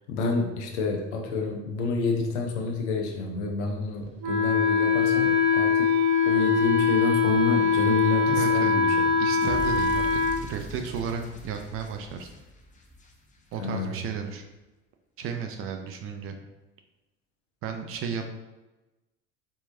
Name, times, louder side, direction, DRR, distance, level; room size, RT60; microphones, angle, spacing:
voice 1, 0.1-5.9 6.2-9.2 13.6-14.0, left 2 dB, 60° left, 2 dB, 0.9 m, -29 dB
Wind instrument woodwind instrument, 4.2-10.4, left 5 dB, 60° right, 1.0 m, -22 dB
voice 2, 8.3-8.7 9.2-10.1 10.5-12.3 13.5-14.4 15.2-16.4 17.6-18.2, right 6 dB, 35° right, 5 dB, 0.5 m, -33 dB
sound 1, 9.4-13.6, equal, 20° left, 0.7 m, -41 dB
4.5 x 3.5 x 2.7 m, 1.1 s
figure-of-eight pair, 65°, 38 cm